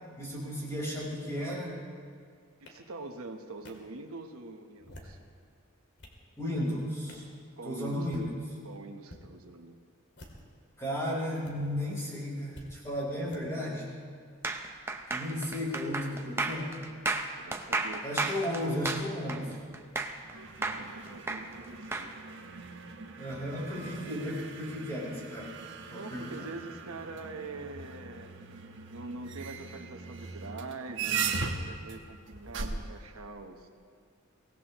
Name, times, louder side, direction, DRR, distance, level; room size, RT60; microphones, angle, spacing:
voice 1, 0.2-1.7 6.4-7.2 7.6-8.2 10.8-13.9 15.1-16.8 18.0-19.5 23.2-25.5 25.9-26.3, left 1 dB, 15° left, -5 dB, 4.5 m, -34 dB
voice 2, 2.6-5.2 7.6-8.3 8.6-9.7 17.3-18.3 20.7-22.1 25.9-28.3 28.9-33.7, right 3 dB, 85° right, 4 dB, 1.1 m, -44 dB
sound 1, 2.7-2.8 3.6-3.7 4.7-5.2 5.7-6.2 7.1-7.3 8.0-8.3 9.0-9.2 10.1-10.6 11.4-11.5 12.5-12.7 13.3-13.4, left 1 dB, 55° left, 2.2 m, -50 dB
sound 2, 14.4-20.3 20.6-22.1, right 3 dB, 10° right, 0.7 m, -33 dB
sound 3, 20.2-33.0, right 5 dB, 60° right, 1.2 m, -39 dB
23.5 x 18.0 x 3.1 m, 2.2 s
head